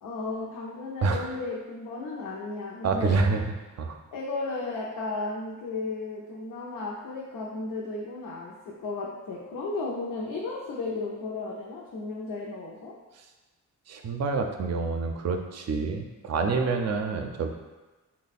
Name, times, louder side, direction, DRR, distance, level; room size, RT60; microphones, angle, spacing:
voice 1, 0.0-3.2 4.1-12.9, left 3 dB, 80° left, -3 dB, 0.6 m, -34 dB
voice 2, 2.8-3.4 3.8-4.0 13.9-17.5, right 4 dB, 55° right, 5 dB, 0.5 m, -27 dB
3.3 x 2.2 x 4.0 m, 1.2 s
cardioid pair, 85°, 32 cm